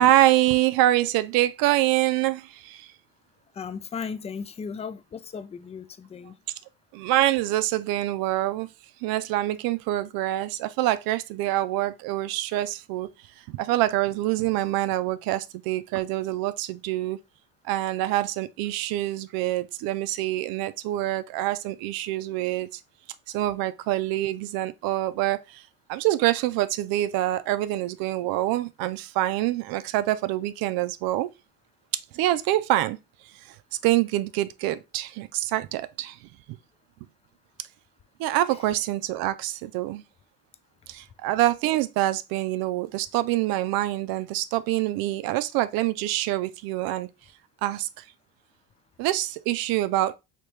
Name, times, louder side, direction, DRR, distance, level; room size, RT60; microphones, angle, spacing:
voice 1, 0.0-2.9 6.9-8.7 9.0-13.1 13.5-17.2 17.6-22.7 23.3-25.6 25.9-31.3 32.1-33.0 33.8-36.2 38.2-40.0 40.9-47.1 47.6-48.0 49.0-50.2, right 15 dB, 70° right, 0.5 m, -25 dB
voice 2, 3.6-6.3, left 6 dB, 20° left, 0.3 m, -36 dB
3.0 x 2.9 x 3.2 m
supercardioid pair, 80°, 36 cm